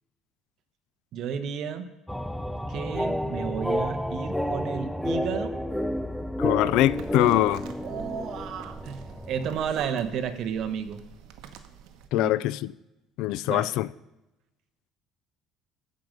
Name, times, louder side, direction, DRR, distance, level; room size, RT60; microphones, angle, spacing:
voice 1, 1.1-1.9 2.7-5.6 7.8-11.0 12.1-12.3 13.4-13.7, right 7 dB, 55° right, 1.1 m, -32 dB
sound 1, 2.1-9.5, left 1 dB, 5° left, 0.5 m, -30 dB
voice 2, 6.4-7.6 12.1-12.7 13.2-13.9, left 15 dB, 75° left, 0.4 m, -23 dB
sound 2, 6.7-12.1, right 8 dB, 80° right, 1.1 m, -46 dB
13.5 x 5.2 x 7.7 m
cardioid pair, 140°, 0 cm